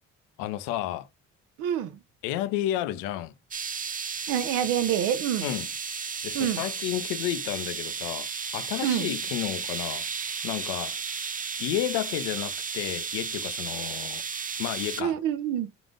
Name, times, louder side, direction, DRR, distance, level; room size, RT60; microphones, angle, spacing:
voice 1, 0.4-1.1 2.2-3.3 5.4-5.7 6.2-10.1 10.4-11.0 11.6-14.2 14.6-15.2, left 13 dB, 90° left, 0.5 m, -31 dB
voice 2, 1.6-2.0 4.3-5.5 6.3-6.6 8.8-9.2 15.0-15.7, right 10 dB, 85° right, 0.6 m, -27 dB
sound 1, 3.5-15.0, right 5 dB, 25° right, 0.6 m, -34 dB
3.8 x 2.4 x 3.7 m
supercardioid pair, 60°, 31 cm